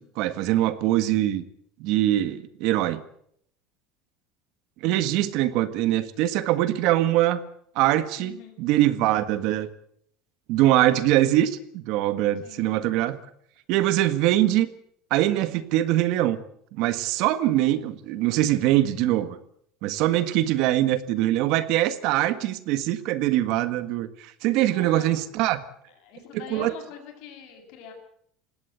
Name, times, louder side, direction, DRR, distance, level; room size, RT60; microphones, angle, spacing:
voice 1, 0.0-1.4 1.8-3.0 4.8-7.4 7.8-9.7 10.5-13.2 13.7-14.7 15.1-16.4 16.7-19.4 19.8-25.6 26.3-26.7, right 14 dB, 60° right, 13 dB, 1.7 m, -23 dB
voice 2, 8.2-8.6 12.4-12.6 24.7-25.2 26.0-27.9, left 7 dB, 60° left, 4 dB, 7.7 m, -43 dB
20.5 x 17.0 x 8.1 m, 0.67 s
cardioid pair, 155°, 0 cm